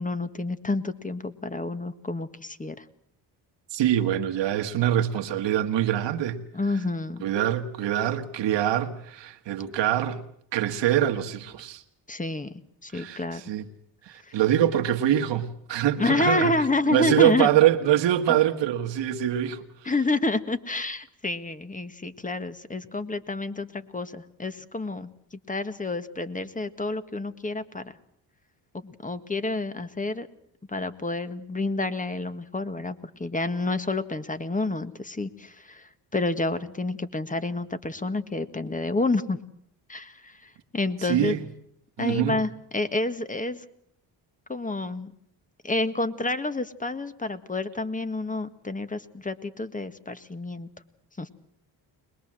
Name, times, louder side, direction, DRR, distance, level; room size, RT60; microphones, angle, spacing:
voice 1, 0.0-2.8 6.5-7.2 12.1-12.5 12.8-13.4 14.2-14.3 16.0-17.5 19.8-27.9 28.7-30.3 30.7-39.4 39.9-41.4 42.0-43.6 44.5-45.1 45.6-50.7 51.2-51.3, left 2 dB, 20° left, 1.6 m, -29 dB
voice 2, 3.7-6.4 7.2-10.2 10.5-11.8 12.9-13.7 14.0-16.6 16.9-19.9 41.0-41.4 42.0-42.4, right 11 dB, 80° right, 1.7 m, -24 dB
22.5 x 21.0 x 7.6 m
cardioid pair, 75°, 43 cm